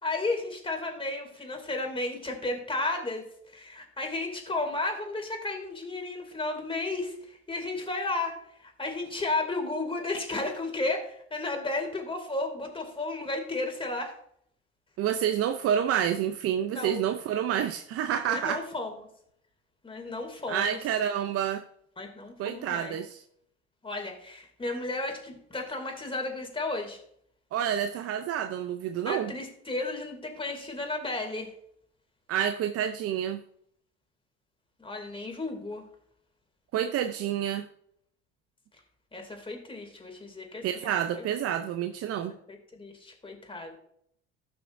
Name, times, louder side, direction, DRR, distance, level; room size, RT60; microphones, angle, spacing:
voice 1, 0.0-8.4 8.6-14.1 16.7-17.0 18.3-18.9 19.8-20.8 22.0-22.9 23.8-27.0 29.1-31.5 34.8-35.8 39.1-41.2 42.5-43.8, left 2 dB, 20° left, 2.7 m, -33 dB
voice 2, 15.0-18.6 20.5-21.6 22.4-23.2 27.5-29.3 32.3-33.4 36.7-37.7 40.6-42.3, right 9 dB, 55° right, 0.7 m, -28 dB
14.5 x 6.0 x 2.6 m
hypercardioid pair, 75°, 30 cm